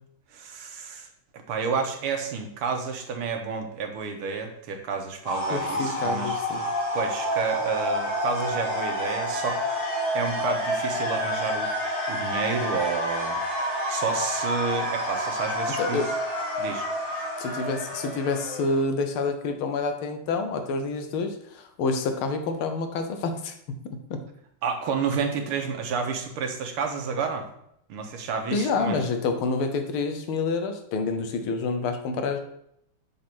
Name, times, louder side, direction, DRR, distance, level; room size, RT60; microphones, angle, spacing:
voice 1, 0.3-1.1 1.5-6.4 6.9-9.6 10.1-13.4 13.9-16.0 16.6-17.3 24.6-27.5 27.9-29.0, right 5 dB, 85° right, 4 dB, 2.0 m, -30 dB
sound 1, 5.2-18.8, equal, 60° left, 3.3 m, -29 dB
voice 2, 5.5-6.7 15.8-16.1 17.4-23.5 24.1-24.2 28.5-32.4, left 4 dB, 80° left, 7 dB, 1.7 m, -28 dB
7.2 x 4.0 x 6.0 m, 0.74 s
omnidirectional pair, 2.3 m